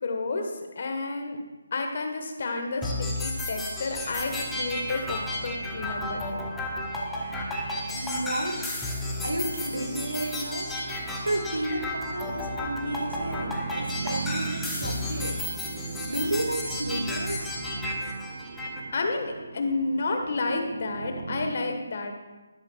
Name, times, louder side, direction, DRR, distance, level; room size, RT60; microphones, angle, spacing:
voice 1, 0.0-1.4 1.7-6.4 18.9-22.1, left 3 dB, 50° left, 4 dB, 1.4 m, -31 dB
sound 1, 2.8-18.8, left 1 dB, 5° left, 1.1 m, -33 dB
sound 2, 4.3-21.5, right 4 dB, 50° right, 0.8 m, -39 dB
voice 2, 7.9-8.7 9.2-10.7 11.2-15.5 16.1-17.5, right 1 dB, 85° right, 6 dB, 1.3 m, -32 dB
11.5 x 11.0 x 2.4 m, 1.2 s
figure-of-eight pair, 150°, 0 cm